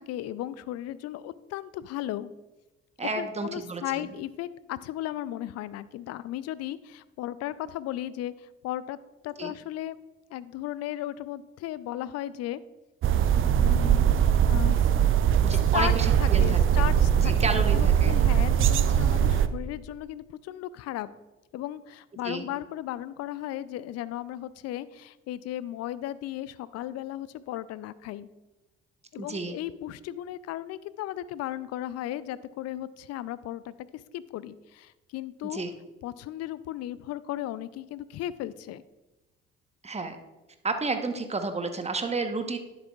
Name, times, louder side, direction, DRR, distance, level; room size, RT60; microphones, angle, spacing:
voice 1, 0.0-2.3 3.0-9.0 9.2-10.0 10.3-12.6 13.6-14.0 14.5-14.8 15.5-15.9 16.2-21.1 21.5-28.3 29.1-35.6 36.0-38.8, left 13 dB, 55° left, 17 dB, 0.4 m, -35 dB
voice 2, 3.0-4.1 9.4-9.5 15.4-16.9 17.2-18.2 22.2-22.5 29.2-29.6 35.5-35.7 39.8-40.2 40.6-42.6, right 3 dB, 20° right, 7 dB, 1.0 m, -31 dB
sound 1, 13.0-19.5, right 9 dB, 40° right, 0.5 m, -21 dB
11.0 x 7.2 x 2.4 m, 1.1 s
hypercardioid pair, 50°, 31 cm